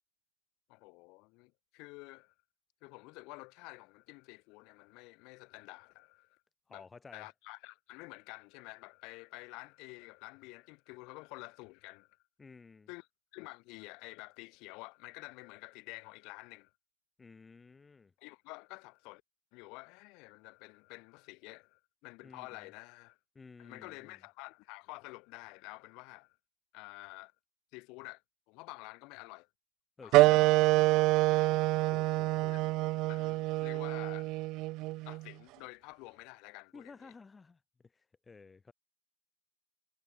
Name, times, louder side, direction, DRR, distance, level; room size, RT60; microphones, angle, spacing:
voice 1, 0.7-2.3 2.8-6.4 6.7-6.9 7.1-12.2 12.9-16.7 18.2-19.2 19.5-23.2 23.6-26.4 26.7-27.3 27.7-28.2 28.5-29.5 30.0-30.6 31.2-31.6 32.5-32.6 33.1-34.3 35.0-37.1, left 26 dB, 45° left, 1.6 m, -50 dB
voice 2, 6.7-7.3 12.4-12.9 17.2-18.1 22.2-22.7 23.3-24.2 30.0-30.4 31.9-32.6 36.7-38.7, left 4 dB, 15° left, 3.9 m, -54 dB
sound 1, 30.1-35.2, right 21 dB, 45° right, 0.4 m, -27 dB
hypercardioid pair, 120°, 0 cm